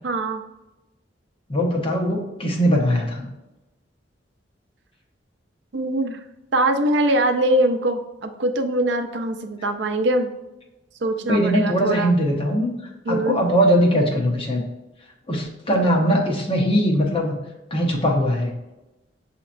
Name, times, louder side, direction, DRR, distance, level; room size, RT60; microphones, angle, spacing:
voice 1, 0.0-0.4 5.7-6.2 6.5-10.3 11.0-12.1 13.1-13.4, right 1 dB, 70° right, 6 dB, 0.5 m, -22 dB
voice 2, 1.5-3.3 11.3-12.7 13.1-14.6 15.3-17.3 17.7-18.5, equal, 30° left, 0 dB, 0.9 m, -20 dB
7.0 x 2.9 x 2.5 m, 1.0 s
head